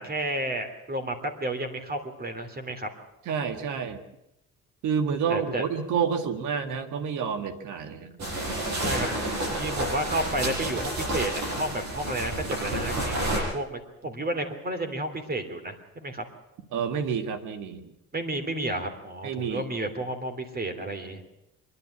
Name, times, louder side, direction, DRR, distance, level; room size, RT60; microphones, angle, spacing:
voice 1, 0.0-2.9 5.3-5.7 8.6-9.1 9.5-16.2 18.1-21.2, right 1 dB, 30° right, 6 dB, 3.3 m, -32 dB
voice 2, 3.3-4.0 4.8-8.1 16.7-17.9 19.2-19.6, right 6 dB, 85° right, 9 dB, 1.8 m, -29 dB
sound 1, 8.2-13.4, right 1 dB, 65° right, 7.9 m, -30 dB
25.0 x 11.0 x 9.9 m, 0.88 s
cardioid pair, 90°, 30 cm